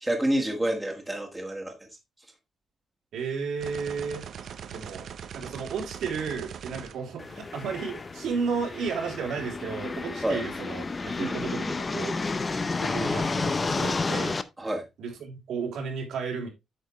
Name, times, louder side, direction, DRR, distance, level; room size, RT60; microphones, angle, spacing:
voice 1, 0.0-1.9 10.2-10.4 11.2-11.6 14.6-14.8, right 1 dB, 10° right, 1.6 m, -28 dB
voice 2, 3.1-4.3 4.7-5.1 5.3-12.2 12.8-14.4 15.0-16.5, right 5 dB, 80° right, 3.5 m, -33 dB
sound 1, 3.6-7.8, right 8 dB, 55° right, 0.7 m, -41 dB
sound 2, 7.2-14.4, left 3 dB, 25° left, 0.6 m, -31 dB
8.6 x 6.4 x 3.1 m
cardioid pair, 155°, 0 cm